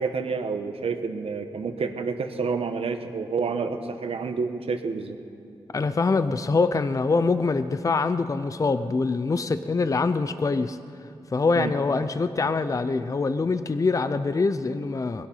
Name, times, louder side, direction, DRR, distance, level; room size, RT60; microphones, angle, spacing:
voice 1, 0.0-5.2 11.5-11.7, right 5 dB, 85° right, 7 dB, 1.1 m, -29 dB
voice 2, 5.7-10.8 11.3-15.3, left 4 dB, 35° left, 12 dB, 0.5 m, -24 dB
20.5 x 11.5 x 5.6 m, 2.7 s
wide cardioid pair, 100°, 10 cm